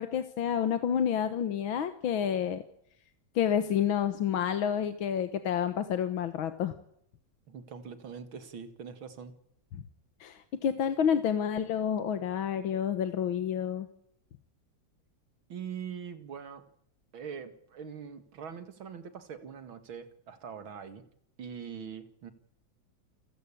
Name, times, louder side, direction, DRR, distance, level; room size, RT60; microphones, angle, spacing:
voice 1, 0.0-2.6 3.4-6.7 10.2-13.9, left 8 dB, 85° left, 9 dB, 2.0 m, -29 dB
voice 2, 7.5-9.3 15.5-16.6 17.1-21.0 21.4-22.3, right 7 dB, 85° right, 9 dB, 2.8 m, -42 dB
29.0 x 16.0 x 8.6 m, 0.73 s
omnidirectional pair, 2.2 m